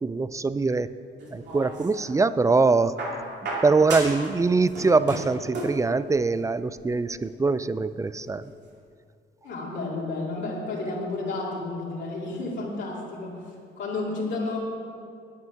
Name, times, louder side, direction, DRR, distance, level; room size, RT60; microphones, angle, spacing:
voice 1, 0.0-0.9 1.3-2.9 3.6-8.5, right 3 dB, 15° right, 15 dB, 0.3 m, -23 dB
sound 1, 1.2-2.2 3.0-4.3 4.6-5.8 6.9-7.0, right 2 dB, 60° right, 2.6 m, -34 dB
voice 2, 9.4-14.6, left 3 dB, 65° left, -5 dB, 2.6 m, -31 dB
9.7 x 8.9 x 5.8 m, 2.4 s
cardioid pair, 90°, 20 cm